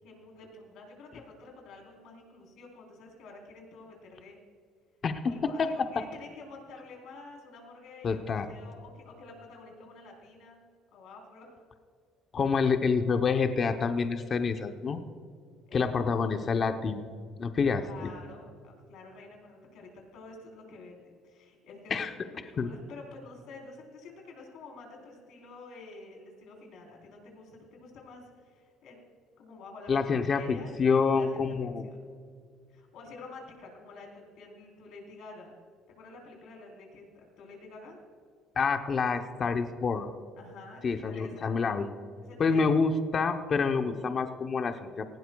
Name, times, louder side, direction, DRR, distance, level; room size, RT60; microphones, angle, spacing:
voice 1, 0.0-4.4 5.3-10.6 10.9-11.7 15.7-16.1 17.6-22.0 22.4-29.0 29.4-30.7 31.1-32.0 32.7-35.6 36.0-38.0 40.4-41.5 42.2-42.6, left 3 dB, 65° left, 1 dB, 3.8 m, -49 dB
voice 2, 8.0-8.5 12.3-15.0 15.7-17.1 17.4-18.1 21.9-22.1 22.6-22.7 29.9-31.8 38.6-40.1 40.8-41.9 42.4-45.1, left 5 dB, 35° left, 7 dB, 0.8 m, -27 dB
18.5 x 17.0 x 2.3 m, 2.1 s
cardioid pair, 135°, 0 cm